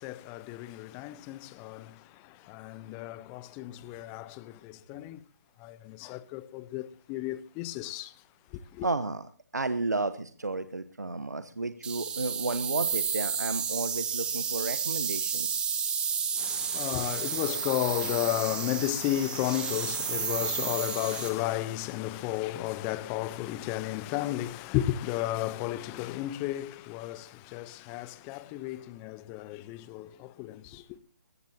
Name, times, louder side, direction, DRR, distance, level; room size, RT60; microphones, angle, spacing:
voice 1, 0.0-5.2 5.6-8.1 8.5-8.9 16.4-31.0, left 15 dB, 20° left, 0.7 m, -33 dB
voice 2, 8.8-15.6, right 3 dB, 90° right, 1.0 m, -32 dB
sound 1, 11.8-21.3, right 7 dB, 10° right, 1.6 m, -32 dB
21.5 x 14.5 x 2.8 m
figure-of-eight pair, 145°, 9 cm